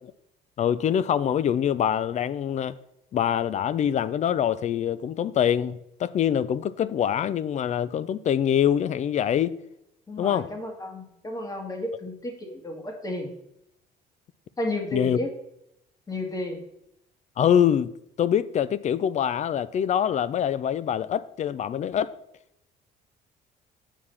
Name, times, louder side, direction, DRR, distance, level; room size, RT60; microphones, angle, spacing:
voice 1, 0.6-2.8 3.1-9.6 10.2-10.5 14.9-15.2 17.4-17.9 18.2-22.1, left 9 dB, 45° left, 0.4 m, -24 dB
voice 2, 10.1-13.3 14.6-15.3 16.1-16.6, left 1 dB, 20° left, 1.7 m, -32 dB
8.9 x 4.8 x 5.5 m
cardioid pair, 110°, 17 cm